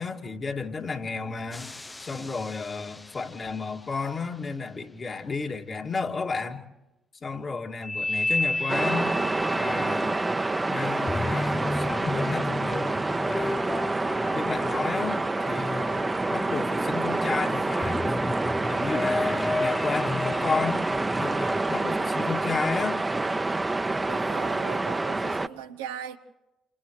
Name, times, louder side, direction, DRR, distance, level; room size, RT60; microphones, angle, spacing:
voice 1, 0.0-1.7 2.0-6.6 7.2-9.1 9.5-10.2 10.7-12.9 13.2-13.6 14.3-15.2 15.5-16.0 16.3-18.0 18.7-20.8 21.2-23.0, left 4 dB, 45° left, 2.4 m, -32 dB
sound 1, 1.5-3.4 7.8-15.1 15.6-17.2 17.8-21.3, left 2 dB, 20° left, 0.7 m, -32 dB
sound 2, 8.7-25.5, right 2 dB, 25° right, 1.0 m, -27 dB
sound 3, 11.2-17.9, left 8 dB, 75° left, 4.4 m, -46 dB
voice 2, 24.1-26.2, right 9 dB, 85° right, 0.9 m, -39 dB
29.5 x 27.5 x 3.2 m
hypercardioid pair, 45°, 0 cm